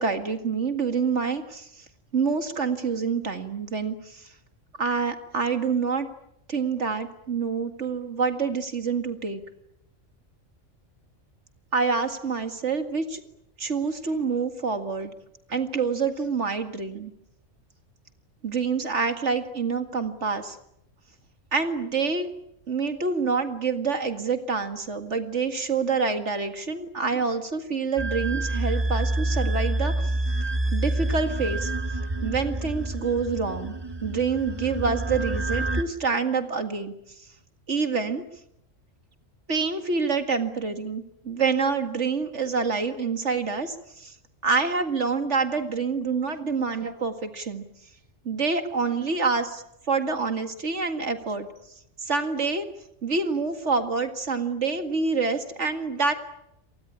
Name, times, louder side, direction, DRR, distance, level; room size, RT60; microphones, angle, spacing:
voice 1, 0.0-1.8 2.1-4.3 4.8-6.1 6.5-9.4 11.7-13.2 13.6-15.1 15.5-17.1 18.4-20.6 21.5-22.3 22.7-30.1 30.4-31.7 32.2-33.7 34.0-36.9 37.7-38.2 39.5-44.1 44.4-47.6 48.2-51.5 52.0-52.7 53.0-56.1, right 4 dB, 65° right, 8 dB, 2.3 m, -27 dB
sound 1, 28.0-35.8, right 2 dB, 20° right, 1.7 m, -27 dB
28.5 x 19.0 x 9.9 m, 0.80 s
omnidirectional pair, 1.3 m